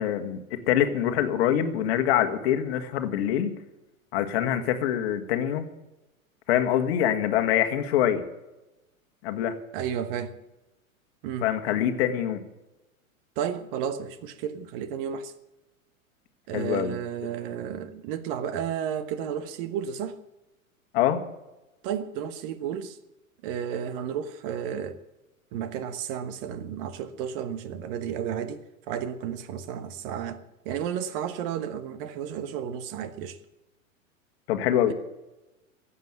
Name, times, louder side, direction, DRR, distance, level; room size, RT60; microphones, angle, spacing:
voice 1, 0.0-3.5 4.1-5.7 6.5-8.2 9.2-9.6 11.4-12.4 16.5-17.0 20.9-21.2 34.5-34.9, left 10 dB, 45° left, 1.6 m, -25 dB
voice 2, 9.7-10.4 11.2-11.5 13.4-15.3 16.5-20.2 21.8-23.0 23.4-25.0 25.5-30.4 30.6-33.4, right 8 dB, 40° right, 1.3 m, -32 dB
15.0 x 8.5 x 9.1 m
figure-of-eight pair, 95°, 42 cm